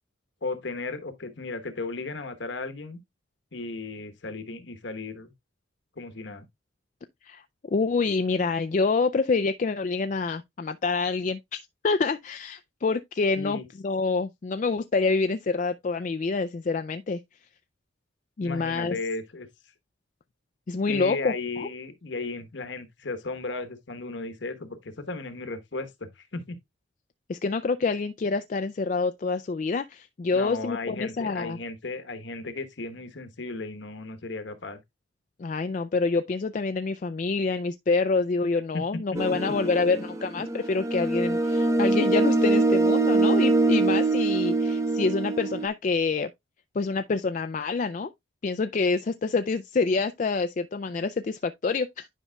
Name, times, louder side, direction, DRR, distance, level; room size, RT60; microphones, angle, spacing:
voice 1, 0.4-3.0 3.5-5.3 6.0-6.5 13.4-13.6 18.4-19.5 20.9-26.6 30.3-34.8 38.7-38.8, left 3 dB, 70° left, 1.1 m, -35 dB
voice 2, 7.2-17.2 18.4-19.0 20.7-21.7 27.3-31.6 35.4-46.3 46.7-48.1 48.4-52.1, left 4 dB, 40° left, 0.3 m, -27 dB
sound 1, 39.1-45.7, right 2 dB, 15° right, 0.6 m, -24 dB
10.0 x 5.3 x 2.3 m
head